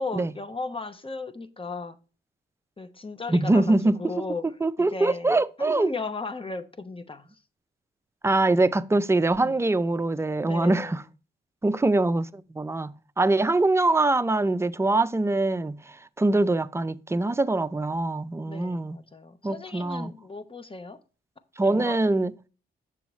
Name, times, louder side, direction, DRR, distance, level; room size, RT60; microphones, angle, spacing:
voice 1, 0.0-2.0 2.8-4.5 4.9-7.3 9.4-9.6 10.5-11.1 18.5-21.0 21.6-22.0, left 3 dB, 25° left, 0.9 m, -36 dB
voice 2, 3.3-4.0 4.6-5.9 8.2-11.0 11.6-15.8 16.2-19.0 19.4-20.1 21.6-22.3, right 2 dB, 10° right, 0.5 m, -23 dB
7.1 x 6.7 x 3.1 m
cardioid pair, 60°, 21 cm